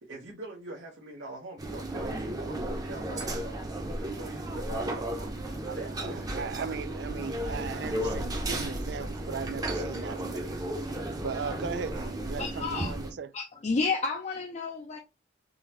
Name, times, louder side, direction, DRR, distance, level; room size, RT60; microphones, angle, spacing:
voice 1, 0.0-5.4 5.7-6.8, right 2 dB, 85° right, 1.0 m, -43 dB
sound 1, 1.6-13.1, right 1 dB, 20° right, 0.7 m, -34 dB
voice 2, 5.7-10.8 11.2-13.3, right 5 dB, 65° right, 0.4 m, -38 dB
voice 3, 12.4-12.9 13.3-15.0, left 4 dB, 40° left, 0.5 m, -31 dB
3.9 x 3.0 x 2.9 m
head